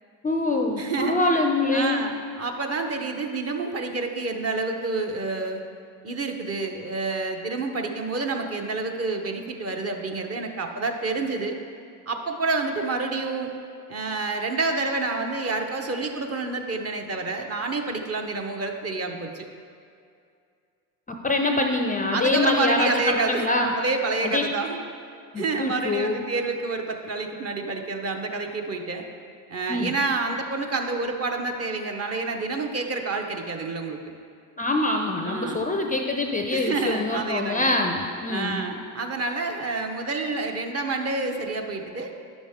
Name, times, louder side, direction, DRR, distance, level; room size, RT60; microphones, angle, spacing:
voice 1, 0.2-2.1 21.1-23.7 24.2-24.5 25.3-26.2 29.7-29.9 34.6-38.6, left 2 dB, 20° left, 3 dB, 0.5 m, -24 dB
voice 2, 0.8-1.2 1.7-5.6 6.0-11.6 12.1-13.5 13.9-19.4 22.1-23.5 23.7-24.8 25.4-29.1 29.5-34.0 35.2-35.6 36.5-37.7 38.3-42.1, right 3 dB, 30° right, 3 dB, 0.9 m, -28 dB
9.7 x 6.2 x 3.6 m, 2.4 s
hypercardioid pair, 75°, 46 cm